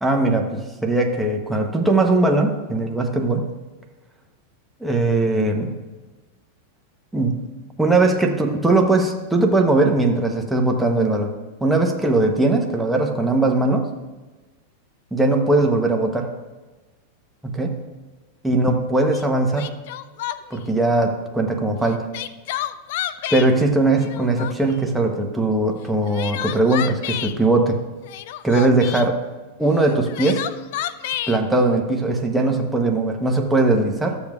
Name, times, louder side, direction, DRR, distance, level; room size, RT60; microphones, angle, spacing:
voice 1, 0.0-3.5 4.8-5.8 7.1-7.5 7.8-11.4 11.6-14.0 15.1-16.3 17.4-17.9 18.4-19.7 20.5-22.1 23.3-27.8 28.4-29.2 29.6-30.5 31.3-34.2, right 2 dB, 5° right, 1 dB, 0.9 m, -20 dB
Crying sobbing, 19.1-19.2 19.6-20.6 21.8-23.5 24.0-24.8 25.8-27.4 28.0-29.1 29.8-31.4, left 12 dB, 65° left, 0.4 m, -29 dB
13.0 x 7.1 x 2.4 m, 1.2 s
hypercardioid pair, 125°, 0 cm